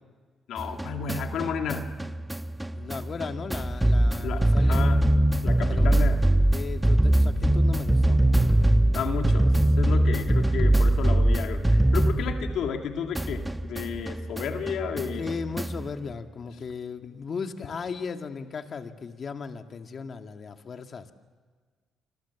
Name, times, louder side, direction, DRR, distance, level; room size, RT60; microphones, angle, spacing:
voice 1, 0.5-2.0 4.2-5.0 5.4-6.4 8.9-15.3, left 6 dB, 80° left, 4 dB, 2.2 m, -32 dB
sound 1, 0.6-12.9 13.1-15.9, right 1 dB, 10° right, 1.0 m, -23 dB
voice 2, 2.7-5.0 5.7-5.9 6.5-8.2 15.2-21.1, left 5 dB, 50° left, 6 dB, 2.0 m, -36 dB
28.5 x 25.0 x 7.2 m, 1.5 s
cardioid pair, 90°, 0 cm